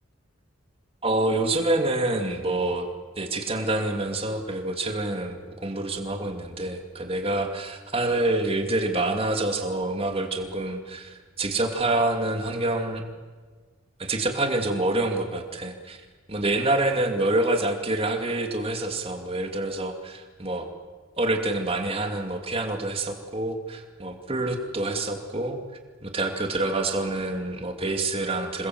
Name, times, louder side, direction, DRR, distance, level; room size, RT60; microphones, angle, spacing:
voice 1, 1.0-2.9 3.2-13.1 14.0-16.0 16.3-20.7 21.2-25.6 26.0-28.7, right 2 dB, 25° right, 4 dB, 2.7 m, -27 dB
27.5 x 21.0 x 7.9 m, 1.5 s
head